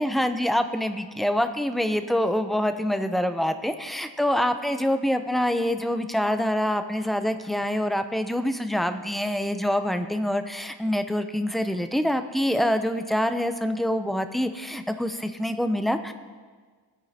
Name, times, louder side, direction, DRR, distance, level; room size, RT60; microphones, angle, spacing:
voice 1, 0.0-16.1, equal, ahead, 8 dB, 0.5 m, -25 dB
17.5 x 9.1 x 2.8 m, 1.5 s
wide cardioid pair, 55°, 47 cm